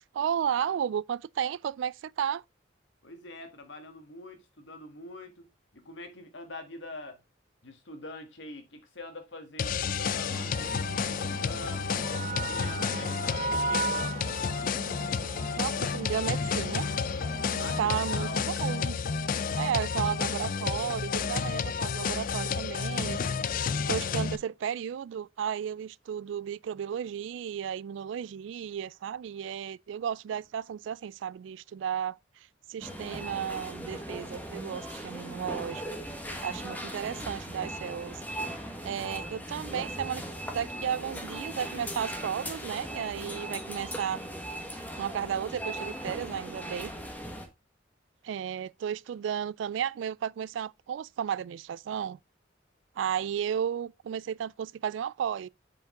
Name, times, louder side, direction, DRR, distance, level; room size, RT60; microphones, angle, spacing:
voice 1, 0.1-2.4 15.5-16.9 17.6-19.0 19.6-23.2 23.9-32.1 32.7-35.8 36.4-38.2 38.8-40.2 40.5-44.2 45.0-46.9 48.2-52.2 53.0-55.5, right 8 dB, 75° right, 0.3 m, -33 dB
voice 2, 3.0-5.5 5.7-7.2 7.6-14.1 17.6-18.4 43.1-43.6, left 2 dB, 70° left, 1.7 m, -44 dB
sound 1, 9.6-24.4, left 6 dB, 45° left, 0.4 m, -31 dB
sound 2, 10.3-18.4, right 3 dB, 35° right, 0.7 m, -37 dB
sound 3, 32.8-47.5, right 1 dB, 10° left, 1.2 m, -39 dB
7.7 x 5.2 x 3.7 m
head